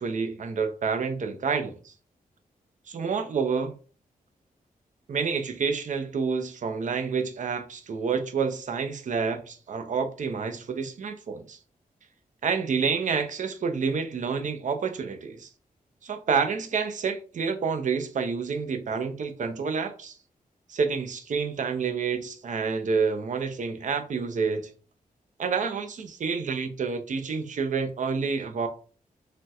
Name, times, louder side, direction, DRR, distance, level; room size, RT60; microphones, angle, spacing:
voice 1, 0.0-1.9 2.9-3.7 5.1-11.6 12.4-15.5 16.0-20.2 20.7-24.7 25.4-28.7, right 5 dB, 55° right, 0.5 m, -28 dB
4.0 x 2.1 x 2.3 m
wide cardioid pair, 90°, 15 cm